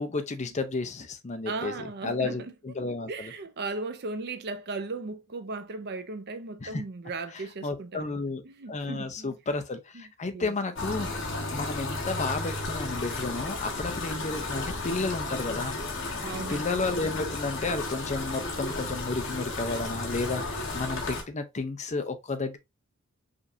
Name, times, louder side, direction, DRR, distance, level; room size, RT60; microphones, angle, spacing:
voice 1, 0.0-3.3 6.6-6.8 7.6-8.4 8.7-11.1 11.5-15.7 16.2-22.6, left 3 dB, 35° left, 0.6 m, -32 dB
voice 2, 1.5-2.5 3.1-9.4 9.9-10.0 10.3-10.5 16.2-16.8, right 3 dB, 50° right, 0.6 m, -37 dB
sound 1, 10.8-21.2, left 2 dB, 60° left, 1.2 m, -33 dB
5.1 x 2.6 x 2.7 m
head